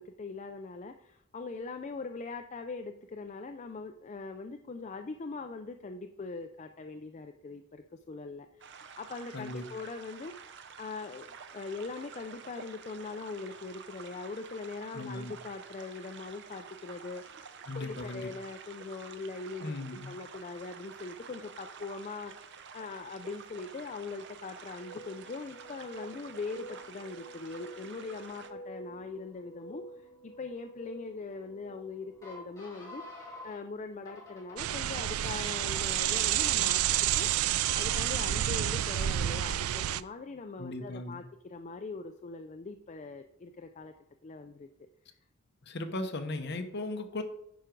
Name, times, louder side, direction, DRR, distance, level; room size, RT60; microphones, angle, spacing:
voice 1, 0.0-10.3 10.8-19.8 20.1-36.8 37.2-37.3 37.7-43.9 44.2-44.7, left 3 dB, 35° left, 6 dB, 0.4 m, -41 dB
sound 1, 8.6-28.5, right 6 dB, 55° right, 0.7 m, -49 dB
voice 2, 9.3-9.6 14.9-15.3 17.7-18.3 19.6-20.2 40.6-41.2 45.7-47.2, left 2 dB, 50° left, 6 dB, 1.0 m, -37 dB
sound 2, 24.6-33.6 34.1-34.7 35.2-36.0 36.6-37.2 37.6-38.4, equal, 15° left, 3.6 m, -49 dB
sound 3, 34.6-40.0, right 12 dB, 85° right, 0.3 m, -29 dB
10.0 x 5.1 x 4.6 m, 0.76 s
head